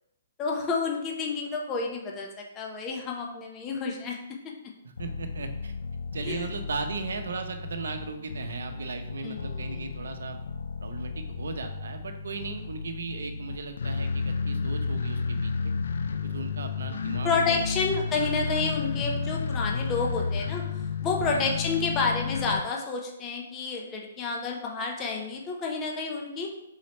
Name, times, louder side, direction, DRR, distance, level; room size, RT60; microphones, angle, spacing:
voice 1, 0.4-4.2 4.4-4.5 6.2-6.5 9.2-9.8 16.9-17.0 17.2-20.6 21.0-26.5, left 4 dB, 20° left, 0 dB, 0.6 m, -30 dB
sound 1, 5.0-22.6, left 5 dB, 80° left, 0.3 m, -32 dB
voice 2, 5.0-5.7 6.1-10.4 10.8-15.7 16.2-17.6 21.3-21.5, right 4 dB, 80° right, 6 dB, 0.6 m, -37 dB
3.9 x 3.1 x 4.2 m, 0.85 s
hypercardioid pair, 165°, 0 cm